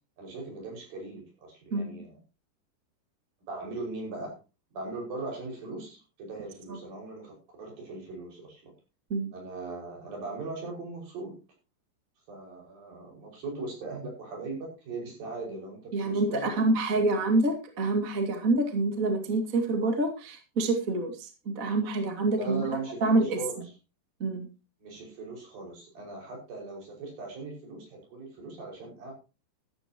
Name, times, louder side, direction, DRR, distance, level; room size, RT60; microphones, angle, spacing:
voice 1, 0.2-2.1 3.5-4.4 4.7-8.7 9.3-11.4 12.3-16.6 22.4-23.6 24.8-29.1, right 3 dB, 60° right, 0 dB, 7.2 m, -39 dB
voice 2, 15.9-22.7 23.0-23.4 24.2-24.5, right 2 dB, 30° right, 5 dB, 1.6 m, -27 dB
14.0 x 14.0 x 2.9 m, 0.30 s
omnidirectional pair, 4.8 m